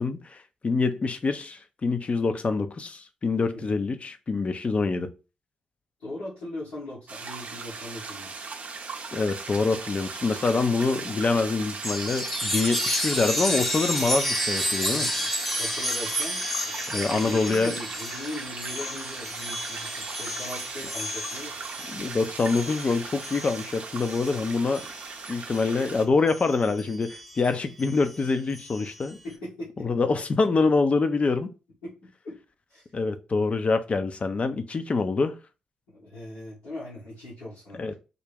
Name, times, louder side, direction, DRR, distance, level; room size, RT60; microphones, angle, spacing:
voice 1, 0.0-5.1 9.1-15.1 16.9-17.7 21.9-24.8 25.3-29.2 29.8-31.5 32.9-35.3 37.7-37.9, left 4 dB, 40° left, 0.5 m, -25 dB
voice 2, 6.0-8.3 14.8-15.3 15.5-21.6 24.6-24.7 29.2-29.9 31.8-31.9 32.2-32.4 32.7-32.8 35.9-37.9, left 1 dB, 90° left, 1.8 m, -39 dB
sound 1, 7.1-26.0, right 4 dB, 50° right, 0.6 m, -38 dB
Chime, 11.8-25.8 26.3-29.1, equal, 5° left, 0.8 m, -32 dB
3.7 x 2.2 x 3.4 m
hypercardioid pair, 40°, 3 cm